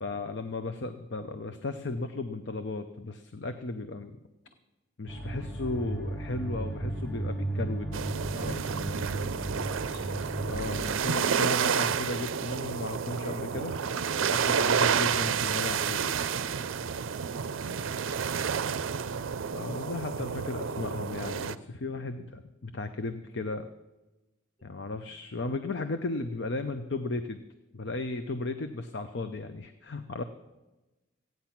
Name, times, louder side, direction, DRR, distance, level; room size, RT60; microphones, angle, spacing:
voice 1, 0.0-4.2 5.0-7.9 8.4-8.8 10.5-13.7 14.2-16.1 19.5-23.7 24.6-27.4 27.7-30.2, left 2 dB, 60° left, 8 dB, 0.6 m, -35 dB
sound 1, 5.1-11.0, right 1 dB, ahead, 3.0 m, -35 dB
sound 2, 7.9-21.6, right 7 dB, 75° right, 0.5 m, -30 dB
voice 2, 9.6-10.0 17.5-18.6 24.6-25.1, right 1 dB, 25° left, -4 dB, 5.6 m, -52 dB
sound 3, 12.4-17.3, right 1 dB, 25° right, 1.0 m, -48 dB
15.0 x 9.4 x 5.9 m, 1.1 s
head